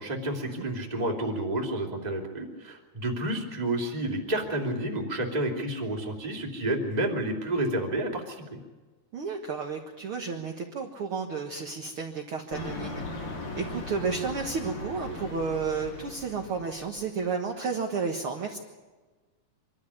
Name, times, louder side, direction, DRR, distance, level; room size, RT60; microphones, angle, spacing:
voice 1, 0.0-8.6, right 1 dB, 10° right, 1 dB, 2.2 m, -30 dB
voice 2, 9.1-13.0 13.6-18.6, right 5 dB, 55° right, 2 dB, 1.6 m, -32 dB
sound 1, 12.5-17.0, left 2 dB, 75° left, 7.6 m, -38 dB
25.0 x 13.0 x 9.9 m, 1.3 s
omnidirectional pair, 4.5 m